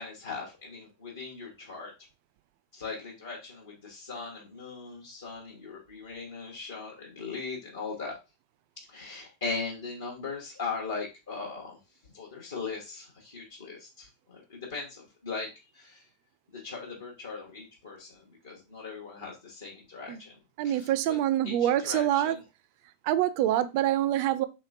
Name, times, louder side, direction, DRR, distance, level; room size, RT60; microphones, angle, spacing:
voice 1, 0.0-1.9 2.7-8.2 8.9-11.8 12.1-16.1 16.5-20.4 20.6-21.2 21.4-22.4, left 4 dB, 65° left, 0.8 m, -39 dB
voice 2, 20.6-22.4 23.1-24.4, right 12 dB, 45° right, 0.3 m, -26 dB
3.1 x 2.9 x 2.4 m
figure-of-eight pair, 90°, 0 cm